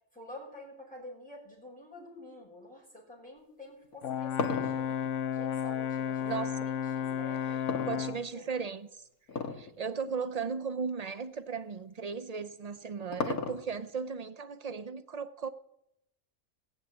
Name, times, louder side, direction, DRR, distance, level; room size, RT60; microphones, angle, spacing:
voice 1, 0.1-5.0 5.3-8.5, left 1 dB, 5° left, -4 dB, 5.5 m, -49 dB
sound 1, 3.8-6.3 7.7-8.6 9.3-9.7 10.1-10.2 10.9-11.0 12.4-13.9, left 4 dB, 85° left, 1.8 m, -35 dB
Brass instrument, 4.0-8.3, left 9 dB, 65° left, 0.9 m, -33 dB
voice 2, 6.3-6.7 7.5-7.6 7.9-9.1 9.5-15.5, right 5 dB, 90° right, 12 dB, 0.3 m, -36 dB
18.0 x 7.2 x 9.0 m, 0.81 s
omnidirectional pair, 1.5 m